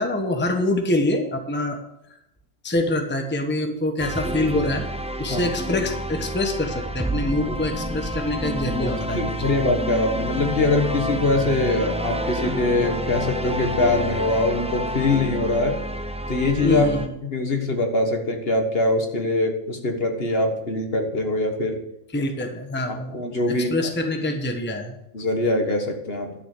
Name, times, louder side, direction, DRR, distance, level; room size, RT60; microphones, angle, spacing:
voice 1, 0.0-1.8 2.6-4.9 5.2-9.5 16.6-17.1 22.1-23.1 23.5-24.9, left 1 dB, 10° left, 4 dB, 1.1 m, -25 dB
sound 1, 4.0-17.1, right 1 dB, 10° right, 0.4 m, -29 dB
voice 2, 8.8-15.7 16.3-16.9 17.3-21.8 23.1-23.9 25.1-26.3, left 2 dB, 50° left, 4 dB, 1.7 m, -23 dB
12.0 x 6.8 x 6.7 m, 0.84 s
omnidirectional pair, 1.4 m